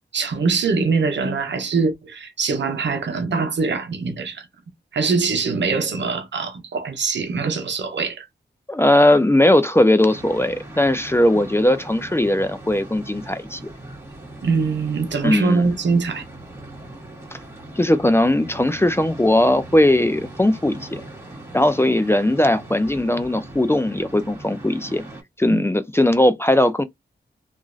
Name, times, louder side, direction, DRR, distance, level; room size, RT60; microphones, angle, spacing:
voice 1, 0.1-4.5 4.9-8.3 14.4-16.2 25.5-25.6, right 4 dB, 75° right, 0.8 m, -23 dB
voice 2, 8.7-13.6 15.2-15.7 17.3-17.4 17.8-21.0 21.5-25.0 25.4-26.8, left 1 dB, 15° left, 0.4 m, -18 dB
sound 1, 10.1-25.2, right 1 dB, 15° right, 1.6 m, -40 dB
2.9 x 2.5 x 2.5 m
cardioid pair, 60°, 19 cm